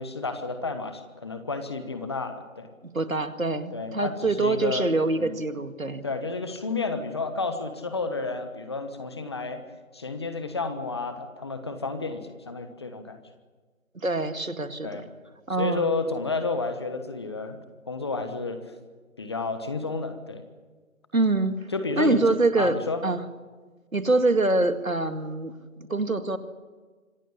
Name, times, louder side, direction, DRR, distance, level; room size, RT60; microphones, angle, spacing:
voice 1, 0.0-2.7 3.7-5.3 6.0-9.6 9.9-13.2 14.8-15.0 15.6-17.6 17.9-18.6 19.2-20.4 21.7-22.2 22.6-23.0, left 3 dB, 20° left, 8 dB, 1.3 m, -31 dB
voice 2, 2.9-6.0 13.9-15.0 15.5-15.9 21.1-21.7 22.0-23.2 23.9-26.4, right 2 dB, 90° right, 9 dB, 2.2 m, -25 dB
26.0 x 16.0 x 8.6 m, 1.4 s
figure-of-eight pair, 160°, 40 cm